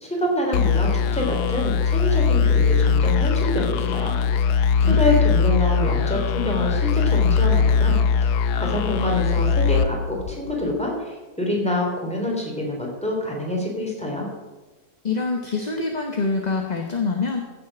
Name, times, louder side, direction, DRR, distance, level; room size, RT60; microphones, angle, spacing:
voice 1, 0.0-4.2 4.5-8.0 8.5-14.3, left 1 dB, 5° left, -1 dB, 3.1 m, -26 dB
sound 1, 0.5-10.8, left 6 dB, 80° left, 1.2 m, -21 dB
voice 2, 15.0-17.4, left 4 dB, 30° left, 3 dB, 1.1 m, -25 dB
15.5 x 7.7 x 6.1 m, 1.2 s
omnidirectional pair, 1.7 m